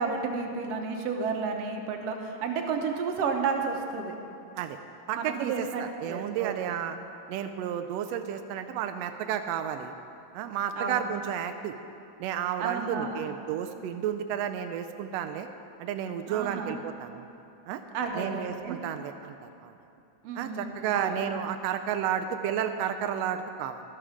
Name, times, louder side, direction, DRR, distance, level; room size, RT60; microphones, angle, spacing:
voice 1, 0.0-4.2 5.1-6.8 10.8-11.0 12.6-13.2 16.3-16.8 17.9-18.8 20.2-21.3, right 5 dB, 65° right, 3 dB, 1.9 m, -32 dB
voice 2, 5.1-7.0 7.3-9.9 10.3-11.8 12.2-15.5 15.8-17.3 17.7-17.8 18.1-19.7 20.3-23.8, right 9 dB, 85° right, 8 dB, 1.4 m, -32 dB
12.5 x 12.0 x 5.0 m, 2.7 s
omnidirectional pair, 3.5 m